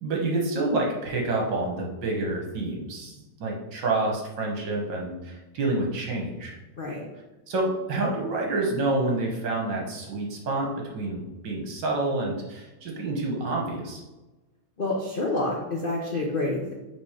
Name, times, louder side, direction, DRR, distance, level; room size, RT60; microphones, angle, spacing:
voice 1, 0.0-6.6 7.5-14.0, right 2 dB, 65° right, -1 dB, 1.9 m, -28 dB
voice 2, 6.8-7.1 14.8-16.7, left 2 dB, 75° left, -2 dB, 0.5 m, -28 dB
6.0 x 3.7 x 5.0 m, 1.1 s
omnidirectional pair, 2.2 m